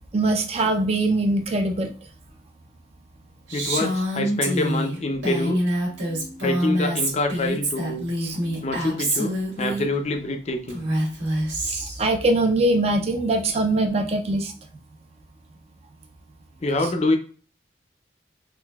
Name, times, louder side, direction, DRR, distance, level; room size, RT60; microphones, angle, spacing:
voice 1, 0.1-1.9 6.1-6.4 8.2-8.5 11.7-14.5, right 2 dB, 35° right, 5 dB, 0.4 m, -22 dB
voice 2, 3.5-5.6 6.4-8.0 8.6-10.8 16.6-17.2, left 2 dB, 35° left, 6 dB, 0.4 m, -26 dB
Female speech woman speaking, 3.5-9.9 10.7-12.1, right 1 dB, 80° right, 1.6 m, -26 dB
3.7 x 2.6 x 2.2 m, 0.42 s
head